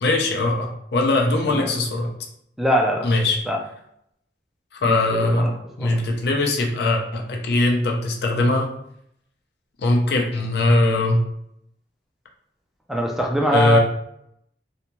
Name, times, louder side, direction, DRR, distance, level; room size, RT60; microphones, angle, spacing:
voice 1, 0.0-2.1 3.0-3.4 4.8-5.5 5.8-8.7 9.8-11.2 13.5-13.8, left 2 dB, 65° left, 1 dB, 0.5 m, -20 dB
voice 2, 2.6-3.1 3.5-3.6 4.8-5.5 5.8-6.0 12.9-13.8, equal, ahead, -1 dB, 0.4 m, -22 dB
2.7 x 2.2 x 2.9 m, 0.74 s
head